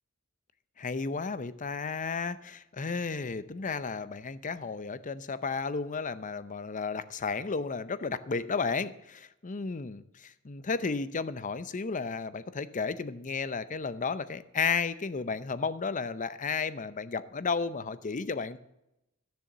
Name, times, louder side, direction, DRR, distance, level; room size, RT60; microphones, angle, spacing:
voice 1, 0.8-18.6, left 5 dB, 35° left, 15 dB, 0.6 m, -33 dB
13.5 x 7.0 x 7.3 m, 0.87 s
head